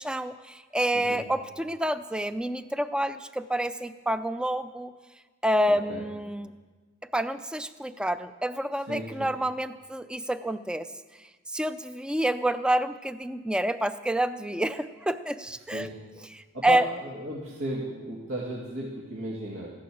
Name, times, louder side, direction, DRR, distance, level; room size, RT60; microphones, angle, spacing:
voice 1, 0.0-4.9 5.4-6.5 7.1-10.9 11.5-15.9 16.3-16.8, right 1 dB, 5° right, 12 dB, 0.4 m, -28 dB
voice 2, 5.7-6.0 8.9-9.3 15.7-16.0 16.5-19.7, right 1 dB, 85° right, -5 dB, 2.5 m, -35 dB
15.5 x 11.5 x 6.3 m, 1.4 s
head